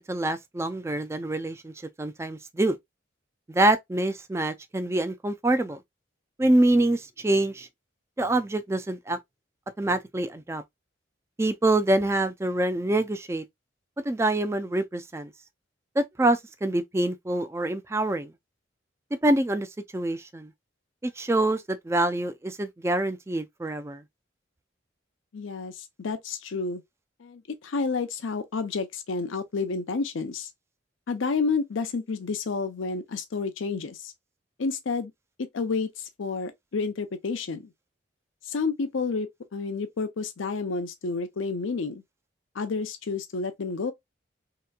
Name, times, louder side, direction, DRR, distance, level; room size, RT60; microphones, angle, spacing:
voice 1, 0.1-1.7 2.0-2.8 3.5-5.8 6.4-7.7 8.2-9.2 9.8-10.6 11.4-13.4 14.1-15.3 16.0-18.3 19.2-19.7 19.9-20.5 21.0-24.0, right 1 dB, 15° right, 0.3 m, -25 dB
voice 2, 25.3-26.8 27.2-30.5 31.1-34.1 34.6-35.1 35.4-37.7 38.4-42.0 42.5-43.9, left 4 dB, 85° left, 0.5 m, -30 dB
3.3 x 2.9 x 2.2 m
head